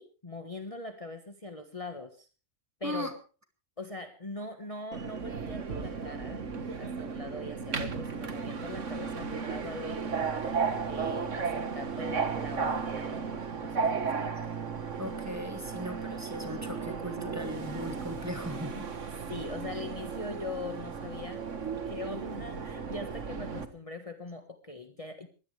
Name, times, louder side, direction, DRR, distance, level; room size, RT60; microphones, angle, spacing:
voice 1, 0.0-2.3 2.8-3.1 3.8-6.4 6.8-10.4 10.9-14.3 19.3-25.3, left 2 dB, 25° left, 7 dB, 1.5 m, -41 dB
Subway metro underground, 4.9-23.7, right 5 dB, 70° right, 1.9 m, -35 dB
voice 2, 15.0-18.9, equal, 10° right, 6 dB, 2.6 m, -38 dB
22.0 x 16.5 x 3.3 m, 0.35 s
omnidirectional pair, 1.3 m